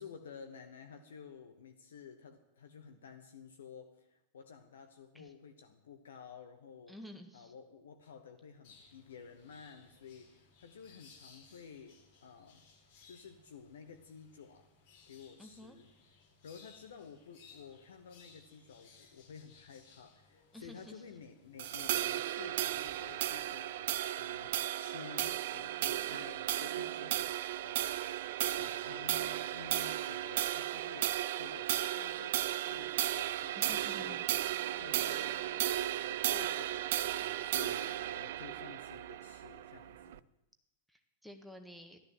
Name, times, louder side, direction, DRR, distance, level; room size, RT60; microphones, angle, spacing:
voice 1, 0.0-7.0 7.3-12.6 13.0-14.7 15.1-15.9 16.4-28.1 28.6-34.2 34.8-40.2, left 6 dB, 65° left, 6 dB, 1.1 m, -52 dB
voice 2, 6.9-7.5 15.4-15.8 20.5-21.0 21.6-21.8 33.6-34.3 40.9-42.0, left 1 dB, ahead, 5 dB, 1.5 m, -51 dB
sound 1, 8.6-23.5, left 5 dB, 45° left, 4.6 m, -62 dB
sound 2, 21.6-40.2, right 13 dB, 55° right, 0.4 m, -35 dB
14.0 x 12.5 x 7.7 m, 0.90 s
figure-of-eight pair, 90°, 0 cm